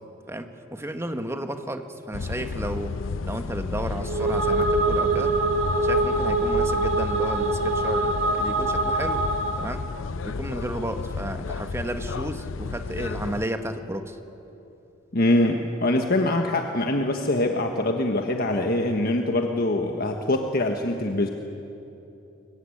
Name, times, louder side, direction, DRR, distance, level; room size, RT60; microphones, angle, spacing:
voice 1, 0.3-3.0 3.2-5.3 5.8-9.3 9.6-9.8 10.2-14.2, right 1 dB, 15° right, 7 dB, 1.5 m, -33 dB
sound 1, 2.1-13.5, left 4 dB, 80° left, 0.5 m, -32 dB
sound 2, 4.0-9.8, right 2 dB, 75° right, 2.4 m, -24 dB
voice 2, 15.1-21.3, left 1 dB, 50° left, 3 dB, 1.4 m, -23 dB
24.0 x 23.0 x 10.0 m, 3.0 s
head